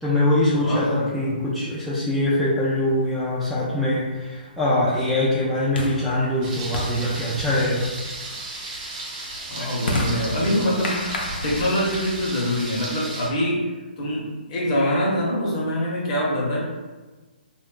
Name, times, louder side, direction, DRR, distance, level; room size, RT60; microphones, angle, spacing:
voice 1, 0.0-7.9, left 1 dB, ahead, -11 dB, 0.4 m, -23 dB
voice 2, 0.6-1.4 9.5-13.7 14.0-16.6, equal, 40° left, -4 dB, 0.8 m, -25 dB
sound 1, 3.1-13.4, left 1 dB, 80° left, 0.6 m, -33 dB
Thunder, 6.4-13.3, right 2 dB, 45° right, 1.0 m, -34 dB
2.3 x 2.1 x 3.7 m, 1.2 s
hypercardioid pair, 145°, 5 cm